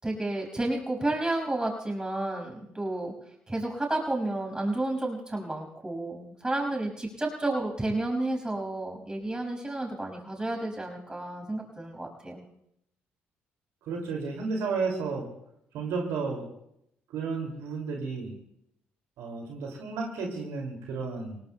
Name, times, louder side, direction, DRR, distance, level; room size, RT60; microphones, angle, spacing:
voice 1, 0.0-3.1 3.5-12.4, right 2 dB, 15° right, 1 dB, 5.8 m, -31 dB
voice 2, 13.8-15.3 15.7-16.5 17.1-18.4 19.2-21.4, right 4 dB, 75° right, 0 dB, 2.5 m, -32 dB
29.0 x 18.0 x 2.3 m, 0.77 s
hypercardioid pair, 55°, 5 cm